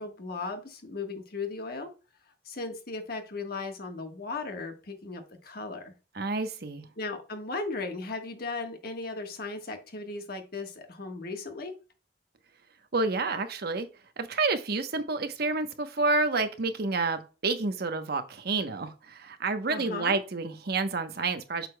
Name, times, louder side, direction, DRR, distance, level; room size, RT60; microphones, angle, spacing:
voice 1, 0.0-1.9 2.4-5.9 7.0-11.7 19.7-20.2, left 3 dB, 60° left, 1.3 m, -36 dB
voice 2, 6.1-6.8 12.9-13.9 14.2-21.7, right 3 dB, 60° right, 0.9 m, -29 dB
8.0 x 6.7 x 2.2 m
head